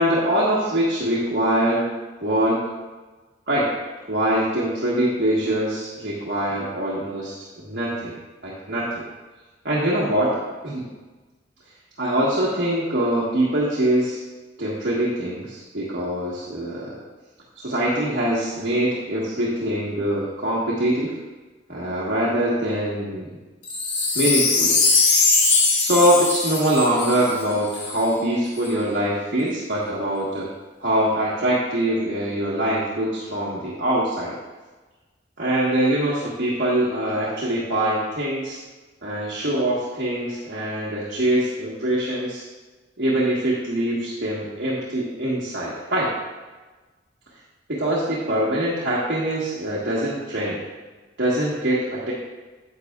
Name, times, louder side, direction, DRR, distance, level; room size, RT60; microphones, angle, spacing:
voice 1, 0.0-1.9 2.2-2.6 3.5-3.7 4.1-8.1 8.4-9.0 9.6-10.3 10.6-10.9 12.0-14.2 14.6-17.0 17.5-21.2 21.7-23.3 24.1-24.7 25.8-30.5 30.8-34.3 35.4-38.6 39.0-42.4 43.0-46.1 47.7-50.7 51.2-52.1, right 1 dB, 60° right, -7 dB, 1.5 m, -23 dB
Wind chime, 23.6-28.0 28.6-28.7, left 4 dB, 75° left, 1.2 m, -21 dB
9.8 x 8.3 x 2.4 m, 1.2 s
head